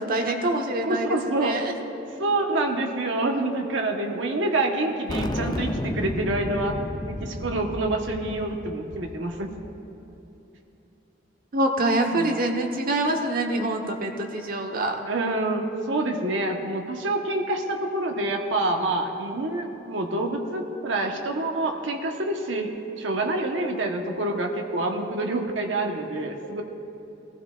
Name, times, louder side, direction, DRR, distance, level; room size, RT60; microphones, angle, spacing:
voice 1, 0.0-1.1 1.4-1.7 11.5-15.0, right 2 dB, 50° right, 2 dB, 1.2 m, -25 dB
voice 2, 0.8-1.6 2.2-6.7 7.0-9.5 12.1-12.3 15.0-22.7 23.0-26.6, right 2 dB, 75° right, 2 dB, 1.1 m, -27 dB
sound 1, 5.1-9.8, left 1 dB, 20° left, 0.6 m, -32 dB
20.0 x 15.0 x 2.5 m, 3.0 s
head